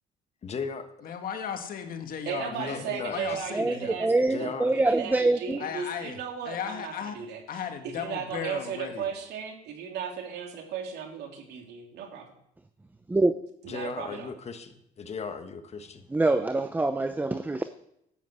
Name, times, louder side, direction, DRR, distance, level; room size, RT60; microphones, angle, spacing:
voice 1, 0.4-0.9 2.5-3.4 4.3-4.7 13.7-16.0, left 5 dB, 40° left, 8 dB, 1.4 m, -36 dB
voice 2, 1.0-4.0 5.6-6.2 6.5-7.2 7.5-9.1, left 8 dB, 60° left, 6 dB, 1.8 m, -36 dB
voice 3, 2.3-4.1 4.4-7.4 7.8-12.2 13.6-14.3, right 7 dB, 80° right, 3 dB, 2.9 m, -36 dB
voice 4, 3.5-5.6 13.1-13.3 16.1-17.7, right 2 dB, 10° right, 10 dB, 0.6 m, -25 dB
12.5 x 7.8 x 8.1 m, 0.78 s
cardioid pair, 110°, 17 cm